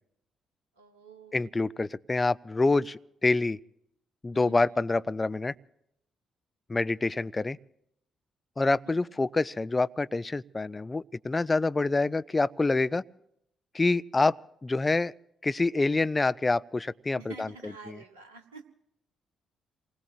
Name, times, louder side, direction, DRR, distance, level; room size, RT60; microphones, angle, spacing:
voice 1, 0.8-1.4 4.3-4.7 8.9-9.1 17.2-18.7, right 4 dB, 75° right, 1.2 m, -48 dB
voice 2, 1.3-3.6 4.2-5.5 6.7-7.6 8.6-13.0 13.7-14.4 14.6-15.1 15.4-18.0, left 3 dB, 25° left, 0.5 m, -27 dB
28.5 x 20.5 x 2.5 m
figure-of-eight pair, 40°, 0 cm